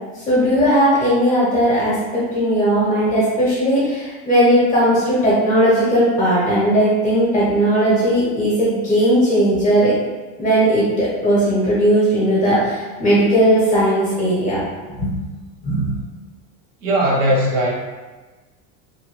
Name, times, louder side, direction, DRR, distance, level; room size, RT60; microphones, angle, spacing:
voice 1, 0.3-9.9 10.4-14.6 15.0-15.1 15.6-15.9, equal, 20° left, -8 dB, 0.7 m, -17 dB
voice 2, 16.8-17.7, right 1 dB, 85° right, -3 dB, 1.0 m, -18 dB
2.7 x 2.2 x 3.0 m, 1.3 s
supercardioid pair, 165°, 40 cm